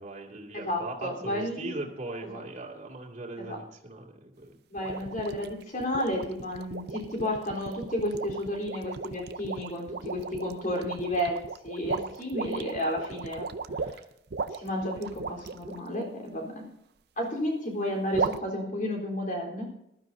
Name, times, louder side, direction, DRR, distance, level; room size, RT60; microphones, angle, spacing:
voice 1, 0.0-4.6 5.0-5.1, right 2 dB, 45° right, -1 dB, 2.4 m, -39 dB
voice 2, 0.5-1.8 2.3-2.4 3.5-3.6 4.7-11.4 11.6-13.5 14.5-16.7 17.2-19.7, left 1 dB, 50° left, 0 dB, 3.8 m, -32 dB
sound 1, 4.8-15.8 18.1-18.4, right 4 dB, 65° right, 0.6 m, -36 dB
20.0 x 12.5 x 2.7 m, 0.81 s
head